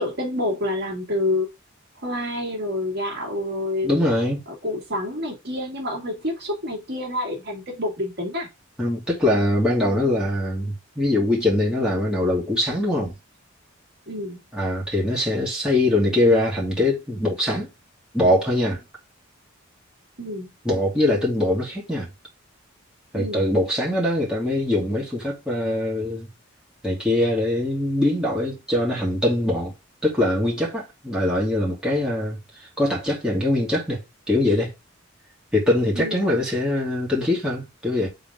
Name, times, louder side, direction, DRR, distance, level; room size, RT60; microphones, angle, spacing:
voice 1, 0.0-1.5 2.0-4.0 4.6-8.5 14.1-14.4 20.2-20.5 23.1-23.4 36.0-36.3, left 1 dB, 55° right, 2.3 m, -28 dB
voice 2, 3.8-4.4 8.8-13.2 14.5-17.7 18.1-18.8 20.6-22.1 23.1-26.3 26.8-29.7 30.0-34.0 34.3-34.7 35.5-38.1, left 1 dB, 5° right, 2.7 m, -22 dB
6.9 x 3.8 x 3.7 m
head